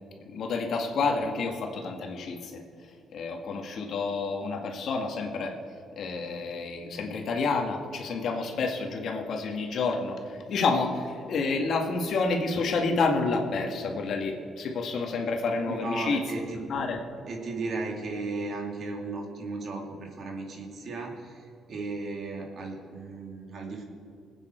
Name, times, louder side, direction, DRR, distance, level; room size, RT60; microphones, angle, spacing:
voice 1, 0.3-2.5 3.1-5.5 6.0-16.2 16.7-17.0, left 4 dB, 65° left, 3 dB, 1.9 m, -29 dB
voice 2, 15.7-16.6 17.3-23.8, right 3 dB, 60° right, 1 dB, 2.7 m, -35 dB
20.5 x 9.0 x 4.5 m, 2.6 s
cardioid pair, 90°, 0 cm